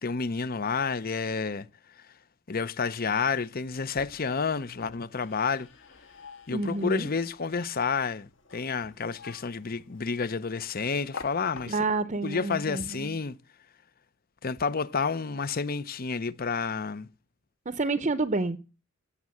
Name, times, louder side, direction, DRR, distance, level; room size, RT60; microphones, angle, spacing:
voice 1, 0.0-1.7 2.5-5.7 6.5-11.8 12.2-13.4 14.4-17.1, left 5 dB, 45° left, 0.7 m, -30 dB
sound 1, 3.6-12.1, left 4 dB, 60° left, 2.1 m, -49 dB
voice 2, 6.5-7.1 11.7-13.2 17.7-18.6, right 3 dB, 35° right, 0.7 m, -29 dB
17.0 x 7.2 x 7.8 m
head